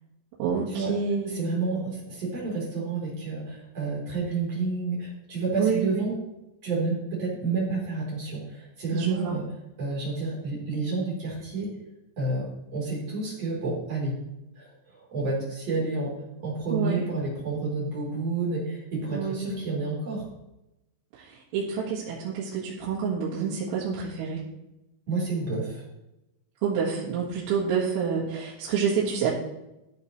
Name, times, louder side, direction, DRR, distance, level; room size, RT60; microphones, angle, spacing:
voice 1, 0.4-1.4 5.6-6.1 8.9-9.4 16.7-17.0 19.1-19.7 21.1-24.4 26.6-29.3, right 6 dB, 85° right, -7 dB, 4.5 m, -28 dB
voice 2, 1.3-6.2 6.6-9.4 9.8-11.7 12.2-12.4 12.7-14.1 14.6-16.1 16.4-20.3 25.1-25.8, right 3 dB, 35° right, -5 dB, 4.6 m, -30 dB
15.0 x 9.5 x 3.3 m, 0.91 s
omnidirectional pair, 5.8 m